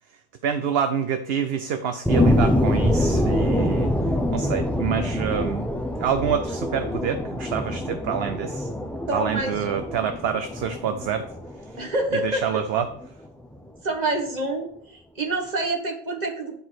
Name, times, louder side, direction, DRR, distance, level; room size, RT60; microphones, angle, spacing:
voice 1, 0.4-3.9 4.3-5.6 6.0-8.7 9.1-11.3 12.2-12.9, right 8 dB, 60° right, 9 dB, 0.7 m, -27 dB
sound 1, 2.1-13.1 13.5-13.6, left 1 dB, ahead, 0.3 m, -25 dB
voice 2, 9.1-9.8 11.8-12.5 13.8-16.6, right 2 dB, 35° right, 3 dB, 1.6 m, -27 dB
10.0 x 4.7 x 5.9 m, 0.64 s
omnidirectional pair, 1.4 m